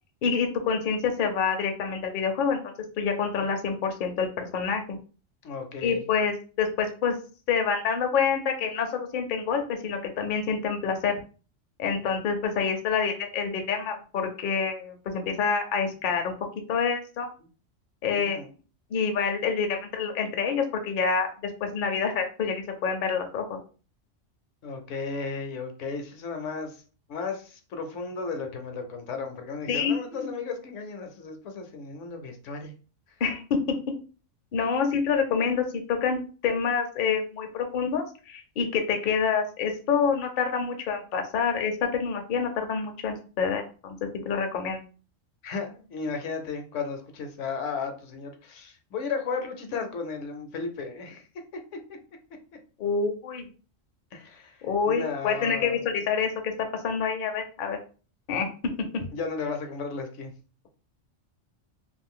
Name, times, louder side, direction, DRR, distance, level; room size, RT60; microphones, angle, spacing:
voice 1, 0.2-2.6 3.0-5.0 5.8-7.2 7.5-11.2 11.8-16.3 16.7-17.3 18.0-18.4 18.9-23.6 29.7-30.3 33.2-33.8 34.5-44.0 44.2-44.8 52.8-53.5 54.6-57.8 58.3-58.5, left 6 dB, 55° left, 5 dB, 0.6 m, -27 dB
voice 2, 5.4-6.0 18.1-18.5 24.6-26.8 27.1-32.7 45.4-51.2 51.9-52.0 54.1-55.8 59.1-60.3, left 4 dB, 75° left, 5 dB, 1.0 m, -34 dB
2.5 x 2.4 x 3.6 m, 0.37 s
omnidirectional pair, 1.3 m